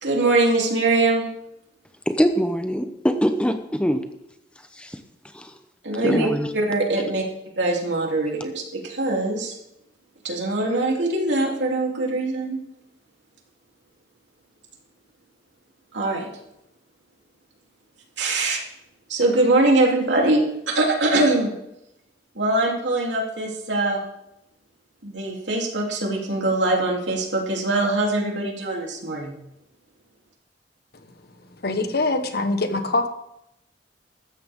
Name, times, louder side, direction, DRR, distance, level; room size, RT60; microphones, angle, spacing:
voice 1, 0.0-1.3 5.8-6.3 6.5-7.2 7.6-9.6 10.2-12.6 15.9-16.3 18.2-18.6 19.1-21.5 22.3-24.0 25.0-29.3, right 2 dB, 70° right, 0 dB, 3.3 m, -22 dB
voice 2, 2.1-4.0 4.8-5.0 5.3-5.5 6.0-6.5, equal, 5° left, 7 dB, 0.8 m, -23 dB
voice 3, 31.6-33.1, left 2 dB, 60° left, 7 dB, 1.4 m, -23 dB
15.5 x 13.0 x 3.7 m, 0.83 s
head